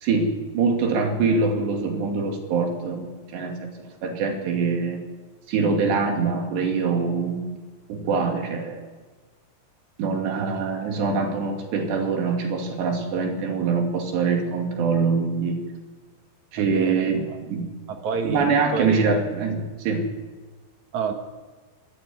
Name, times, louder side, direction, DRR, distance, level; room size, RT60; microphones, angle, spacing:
voice 1, 0.0-3.7 4.0-5.0 5.5-7.4 7.9-8.8 10.0-15.6 16.5-17.2 17.5-17.6 18.2-20.1, right 4 dB, 85° right, 3 dB, 4.7 m, -24 dB
voice 2, 16.6-17.4 17.9-19.2 20.9-21.1, right 6 dB, 55° right, 5 dB, 2.4 m, -29 dB
19.0 x 14.0 x 9.6 m, 1.4 s
omnidirectional pair, 4.8 m